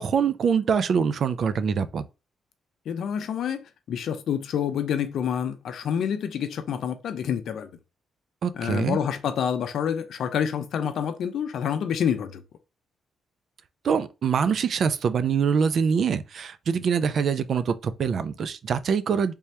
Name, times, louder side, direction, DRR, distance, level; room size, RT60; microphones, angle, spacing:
voice 1, 0.0-2.1 8.4-9.0 13.8-19.3, right 6 dB, 50° right, 0.3 m, -24 dB
voice 2, 2.9-7.7 8.5-12.4, left 8 dB, 65° left, 0.5 m, -28 dB
3.4 x 2.8 x 3.2 m
cardioid pair, 130°, 0 cm